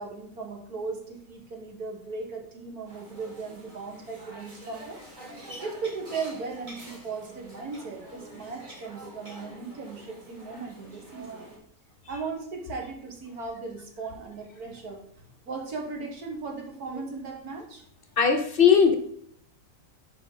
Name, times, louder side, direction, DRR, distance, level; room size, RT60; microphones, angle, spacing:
voice 1, 0.0-5.0 5.6-11.5 12.1-15.0 15.5-17.8, right 4 dB, 70° right, 1 dB, 1.9 m, -37 dB
sound 1, 2.9-11.6, right 1 dB, 30° right, 2.4 m, -46 dB
voice 2, 18.2-18.9, left 7 dB, 50° left, 8 dB, 0.7 m, -18 dB
10.0 x 4.8 x 3.7 m, 0.67 s
omnidirectional pair, 1.7 m